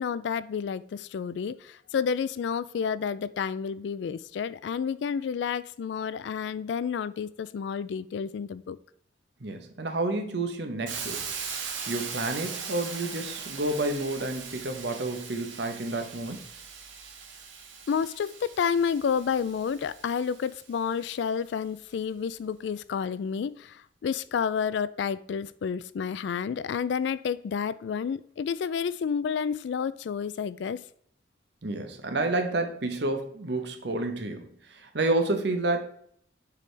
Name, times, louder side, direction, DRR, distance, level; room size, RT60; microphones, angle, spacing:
voice 1, 0.0-8.8 17.9-30.8, left 6 dB, 70° left, 17 dB, 0.3 m, -30 dB
voice 2, 9.4-11.2 11.8-16.4 31.6-35.8, right 2 dB, 65° right, 6 dB, 0.9 m, -30 dB
Hiss, 10.9-20.8, right 6 dB, 90° right, 1.1 m, -40 dB
6.8 x 4.9 x 3.3 m, 0.65 s
head